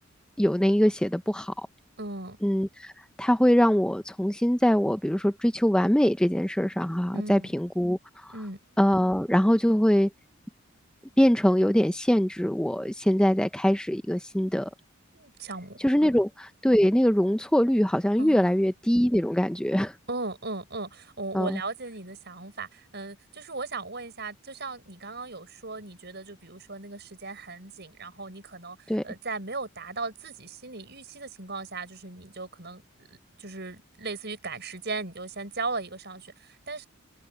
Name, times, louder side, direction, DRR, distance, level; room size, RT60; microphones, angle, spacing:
voice 1, 0.4-1.7 2.4-2.9 3.2-8.3 8.8-10.1 11.2-14.7 15.8-19.9 21.3-21.6 28.9-29.0, equal, 5° left, 0.6 m, -23 dB
voice 2, 2.0-2.4 7.1-7.5 8.3-8.6 15.1-16.1 18.2-18.6 20.1-36.9, right 3 dB, 55° right, 6.5 m, -37 dB
head